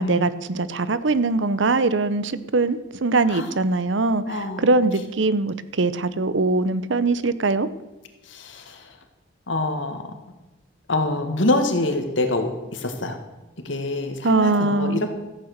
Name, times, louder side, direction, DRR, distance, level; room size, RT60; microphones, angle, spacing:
voice 1, 0.0-4.2 4.6-7.7 14.2-15.0, right 3 dB, 70° right, 15 dB, 0.7 m, -22 dB
voice 2, 4.3-4.8 8.2-9.0 9.5-10.0 10.9-13.2 13.6-15.1, left 2 dB, 70° left, 6 dB, 1.8 m, -25 dB
14.0 x 8.7 x 6.6 m, 1.1 s
head